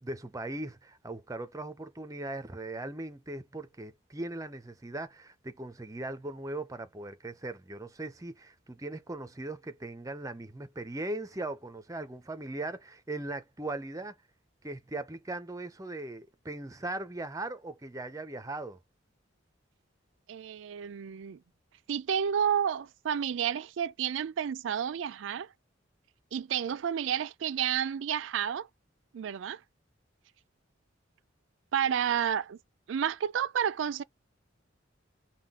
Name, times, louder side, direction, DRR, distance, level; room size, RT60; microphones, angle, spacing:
voice 1, 0.0-14.2 14.6-18.8, right 2 dB, 15° right, 0.5 m, -39 dB
voice 2, 20.3-21.4 21.9-25.5 26.3-28.7 29.1-29.6 31.7-32.6 32.9-34.0, right 8 dB, 70° right, 0.4 m, -30 dB
5.7 x 2.3 x 3.6 m
head